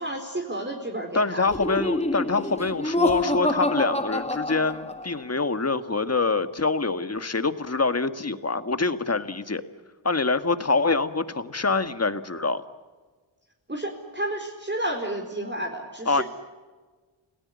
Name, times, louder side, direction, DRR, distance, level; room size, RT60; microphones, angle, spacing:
voice 1, 0.0-1.4 13.7-16.2, right 1 dB, 25° right, 0 dB, 4.2 m, -31 dB
voice 2, 1.1-9.6 10.0-12.6 16.1-16.2, left 3 dB, 35° left, 10 dB, 1.8 m, -25 dB
Laughter, 1.5-5.2, left 2 dB, 15° left, 1.7 m, -26 dB
29.5 x 18.5 x 9.8 m, 1.4 s
wide cardioid pair, 85°, 46 cm